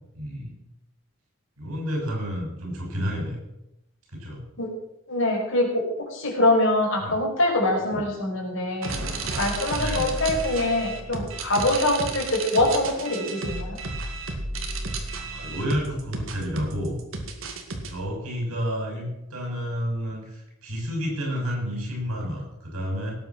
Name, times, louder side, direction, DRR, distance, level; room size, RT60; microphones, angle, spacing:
voice 1, 0.2-0.5 1.6-3.4 4.1-4.4 7.0-7.1 7.9-8.0 9.8-10.1 15.3-17.0 17.9-23.1, equal, 80° right, 0 dB, 6.8 m, -30 dB
voice 2, 5.1-5.8 6.1-9.0 9.4-13.8, left 1 dB, 60° left, -1 dB, 5.2 m, -24 dB
sound 1, 8.8-17.9, right 2 dB, 65° right, 2.1 m, -32 dB
18.5 x 8.5 x 6.1 m, 0.89 s
head